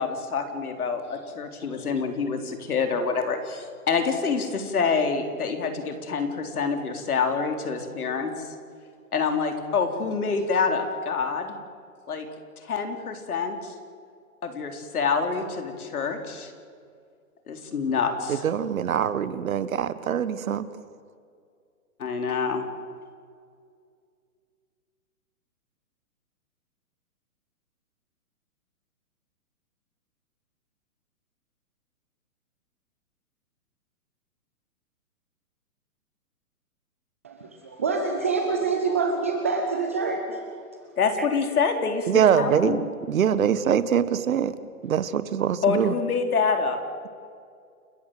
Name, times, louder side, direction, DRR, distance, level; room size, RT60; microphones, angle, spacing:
voice 1, 0.0-8.5 9.1-11.5 12.1-12.3 12.6-13.7 14.4-16.5 17.5-18.4 22.0-22.6 41.0-42.8 45.6-46.8, left 5 dB, 75° left, 6 dB, 3.9 m, -26 dB
voice 2, 18.3-20.6 42.1-44.5 44.8-46.0, right 8 dB, 65° right, 15 dB, 1.4 m, -23 dB
voice 3, 37.2-40.6 41.2-41.3, right 4 dB, 10° right, 4 dB, 0.5 m, -26 dB
29.0 x 14.0 x 7.8 m, 2.2 s
hypercardioid pair, 160°, 45 cm